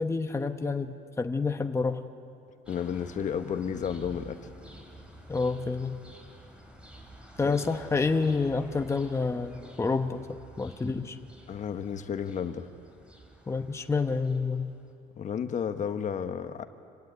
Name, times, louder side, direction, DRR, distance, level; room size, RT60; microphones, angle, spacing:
voice 1, 0.0-2.0 5.3-6.0 7.4-11.2 13.5-14.7, left 4 dB, 15° left, 6 dB, 1.0 m, -28 dB
voice 2, 2.7-4.4 7.4-7.6 11.5-12.7 15.2-16.6, left 7 dB, 45° left, 9 dB, 1.1 m, -32 dB
sound 1, 2.7-14.9, right 1 dB, 5° right, 3.8 m, -50 dB
26.5 x 17.0 x 9.6 m, 2.5 s
cardioid pair, 110°, 17 cm